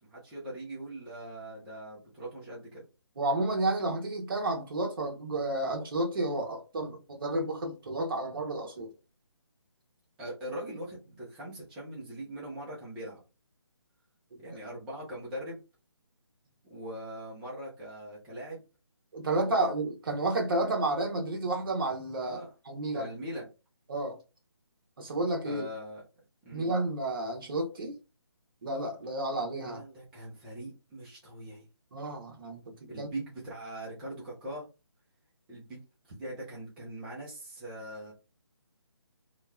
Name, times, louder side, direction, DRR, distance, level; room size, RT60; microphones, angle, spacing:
voice 1, 0.0-2.8 10.2-13.2 14.4-15.6 16.7-18.6 19.4-19.6 22.2-22.5 22.9-23.5 25.4-26.0 26.4-26.8 29.6-31.6 32.9-34.7 35.5-35.8 36.2-38.1, right 1 dB, 5° right, 0.3 m, -41 dB
voice 2, 3.2-8.9 14.3-14.4 19.1-22.4 22.7-23.1 23.9-24.2 25.0-25.6 26.5-28.0 28.6-29.8 31.9-33.1, right 2 dB, 50° right, 0.8 m, -31 dB
3.0 x 2.1 x 2.2 m
figure-of-eight pair, 150°, 14 cm